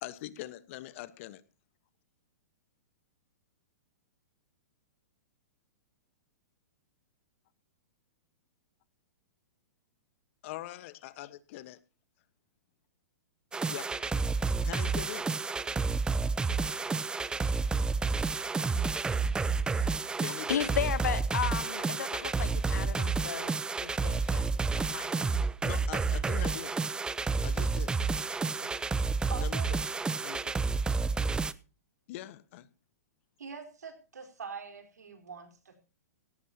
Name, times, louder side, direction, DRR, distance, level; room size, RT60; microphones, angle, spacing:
voice 1, 0.0-1.4 10.4-11.8 13.7-14.0 14.6-15.4 20.2-20.8 25.6-26.8 27.4-28.0 29.4-29.8 30.2-30.8 32.1-32.7, left 15 dB, 50° left, 1.4 m, -42 dB
sound 1, 13.5-31.5, right 4 dB, 10° right, 0.7 m, -30 dB
voice 2, 20.5-23.5 23.8-24.5 24.8-25.3 28.6-28.8, left 9 dB, 75° left, 1.1 m, -34 dB
voice 3, 29.3-29.7 33.4-35.9, right 6 dB, 85° right, 4.4 m, -44 dB
17.5 x 15.0 x 2.9 m
hypercardioid pair, 120°, 9 cm